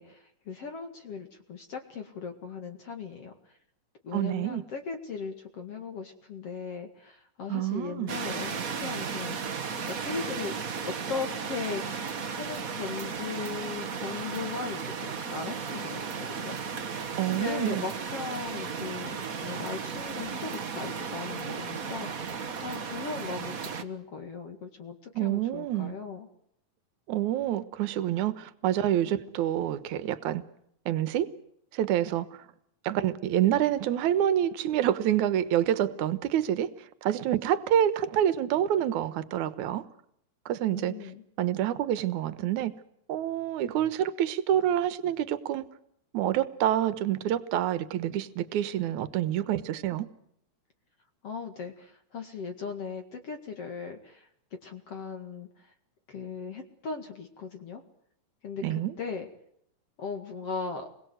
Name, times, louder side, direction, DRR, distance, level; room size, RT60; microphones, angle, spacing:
voice 1, 0.0-3.6 4.0-9.4 9.9-10.5 10.8-11.8 12.3-16.8 17.3-26.3 40.7-41.2 51.2-54.3 54.6-55.7 56.1-57.8 58.4-59.3 60.0-60.9, left 5 dB, 50° left, 2.8 m, -38 dB
voice 2, 4.1-4.6 7.5-8.1 17.2-17.8 25.2-25.9 27.1-30.4 30.9-31.3 31.7-32.4 32.8-36.7 37.0-39.8 40.5-41.1 41.4-42.7 43.1-45.7 46.1-50.1 58.6-58.9, right 11 dB, 70° right, 2.5 m, -27 dB
sound 1, 8.1-23.8, right 6 dB, 50° right, 1.0 m, -35 dB
28.5 x 22.0 x 8.0 m
omnidirectional pair, 3.7 m